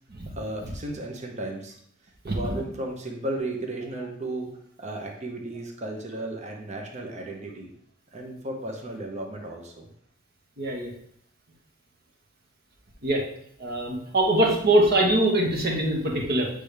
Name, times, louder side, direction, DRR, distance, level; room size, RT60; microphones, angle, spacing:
voice 1, 0.3-1.8 2.2-4.5 4.8-7.7 8.1-9.9, right 1 dB, 35° right, 1 dB, 0.9 m, -34 dB
voice 2, 10.6-10.9 13.0-13.2 13.6-16.5, right 1 dB, 55° right, 0 dB, 1.3 m, -23 dB
8.3 x 3.4 x 3.3 m, 0.66 s
head